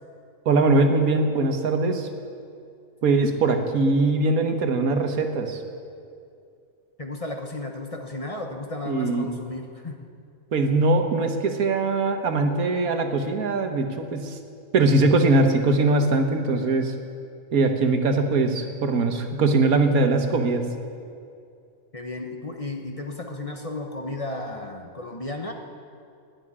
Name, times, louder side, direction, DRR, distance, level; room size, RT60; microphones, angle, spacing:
voice 1, 0.4-2.1 3.0-5.6 8.9-9.3 10.5-14.4 14.7-16.9 17.5-20.6, right 3 dB, 85° right, 5 dB, 1.6 m, -21 dB
voice 2, 7.0-10.1 21.9-25.5, left 2 dB, 30° left, 3 dB, 1.0 m, -34 dB
12.5 x 10.0 x 9.9 m, 2.4 s
omnidirectional pair, 1.5 m